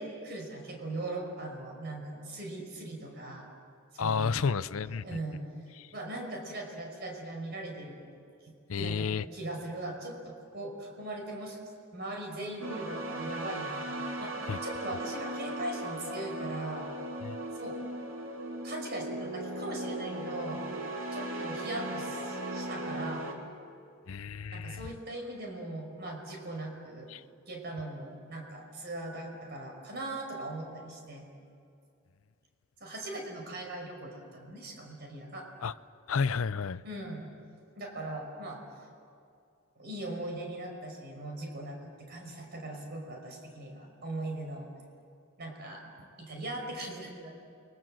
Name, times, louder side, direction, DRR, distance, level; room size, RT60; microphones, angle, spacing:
voice 1, 0.0-3.5 3.9-5.4 5.9-8.1 8.4-11.6 11.9-16.9 17.5-17.8 18.6-20.6 21.1-23.3 24.5-27.1 27.5-31.3 32.8-35.5 36.8-37.3 37.8-38.6 39.8-44.7 45.4-47.3, right 2 dB, 50° right, 5.4 m, -40 dB
voice 2, 4.0-5.0 5.8-5.9 8.7-9.2 14.5-14.6 17.2-17.4 24.1-24.8 27.1-27.2 35.6-35.7 36.1-36.8, left 5 dB, 70° left, 0.6 m, -31 dB
sound 1, 12.6-23.3, right 1 dB, 65° right, 3.5 m, -37 dB
29.5 x 24.0 x 7.7 m
head